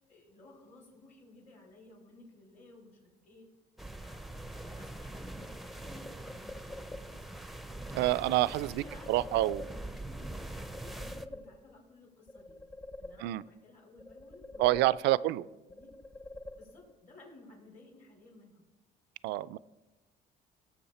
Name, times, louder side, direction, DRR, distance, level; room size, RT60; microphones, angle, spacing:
voice 1, 0.1-3.5 4.0-7.3 8.6-12.6 13.0-15.9 16.5-18.6, left 2 dB, 50° left, -1 dB, 4.9 m, -56 dB
sound 1, 3.8-11.3, right 1 dB, ahead, 0.6 m, -43 dB
sound 2, 5.4-7.4 8.8-10.2 10.6-11.9 12.3-13.6 14.0-15.4 15.7-17.1, left 2 dB, 25° left, 0.9 m, -48 dB
voice 2, 7.9-9.6 13.2-13.4 14.6-15.4 19.2-19.6, right 17 dB, 85° right, 19 dB, 0.4 m, -28 dB
17.5 x 7.4 x 4.2 m, 1.1 s
cardioid pair, 110°, 17 cm